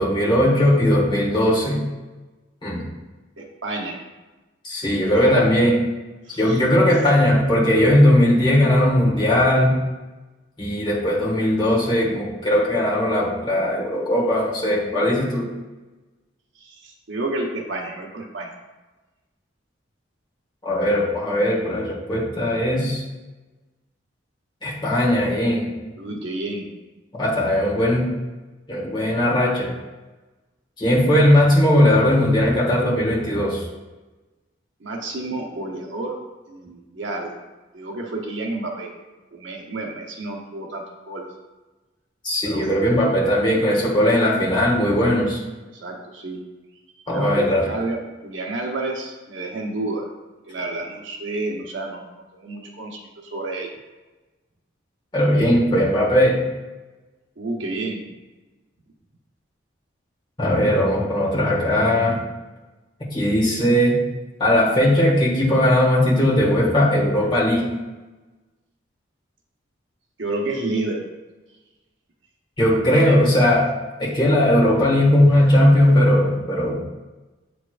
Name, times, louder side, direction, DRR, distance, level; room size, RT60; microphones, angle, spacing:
voice 1, 0.0-1.8 2.6-2.9 4.6-5.8 6.4-9.8 10.6-15.5 20.6-23.0 24.6-25.7 27.2-28.1 28.7-29.7 30.8-33.7 42.2-45.4 47.1-47.6 55.1-56.4 60.4-62.2 63.1-64.0 64.4-67.7 72.6-73.6 74.0-76.8, left 1 dB, 25° left, -6 dB, 1.7 m, -18 dB
voice 2, 3.4-4.0 5.1-5.5 6.3-6.9 16.5-18.5 26.0-26.7 34.8-36.2 36.5-37.4 37.7-38.9 39.3-41.3 42.4-42.7 43.4-43.6 45.7-46.4 47.1-48.0 48.2-50.1 50.5-52.0 52.4-53.7 57.4-58.1 70.2-71.0 72.7-73.3, right 2 dB, 70° right, 0 dB, 1.0 m, -30 dB
8.2 x 4.6 x 2.5 m, 1.2 s
head